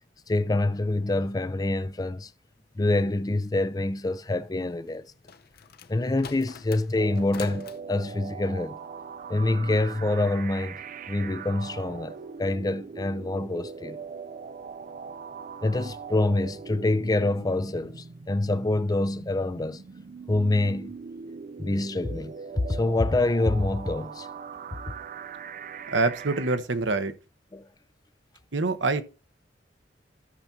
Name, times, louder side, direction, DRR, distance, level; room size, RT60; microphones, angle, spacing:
voice 1, 0.3-2.3 2.8-5.1 5.9-8.8 9.3-14.0 15.6-19.8 20.3-20.9 21.6-24.3 27.5-27.7, left 2 dB, 20° left, 0.5 m, -26 dB
sound 1, 4.9-7.8, left 6 dB, 55° left, 0.8 m, -44 dB
sound 2, 7.0-26.6, right 6 dB, 45° right, 0.5 m, -41 dB
voice 2, 25.9-27.1 28.5-29.0, right 3 dB, 75° right, 1.0 m, -25 dB
14.0 x 6.0 x 2.8 m
head